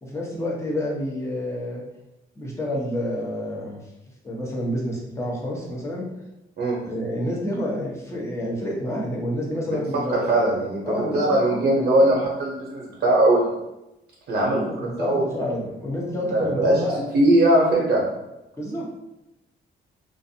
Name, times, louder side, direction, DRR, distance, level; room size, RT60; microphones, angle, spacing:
voice 1, 0.0-1.8 2.4-3.8 4.2-6.0 6.8-10.2 10.8-12.2 14.4-17.1 18.6-19.0, left 1 dB, 15° left, -4 dB, 0.9 m, -29 dB
voice 2, 10.1-13.5 14.3-15.2 16.3-16.8 17.1-18.0, right 1 dB, 55° right, -4 dB, 0.8 m, -20 dB
2.4 x 2.3 x 2.7 m, 0.93 s
cardioid pair, 90°, 20 cm